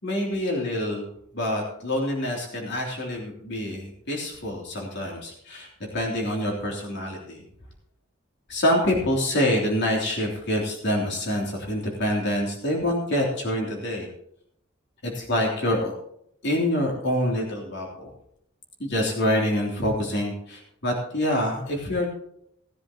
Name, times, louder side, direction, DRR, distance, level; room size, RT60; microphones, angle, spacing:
voice 1, 0.0-1.0 1.3-5.7 5.9-7.4 8.5-14.1 15.0-15.9 16.4-18.1 18.8-22.1, left 1 dB, 60° left, -1 dB, 3.2 m, -26 dB
18.5 x 10.5 x 3.0 m, 0.71 s
head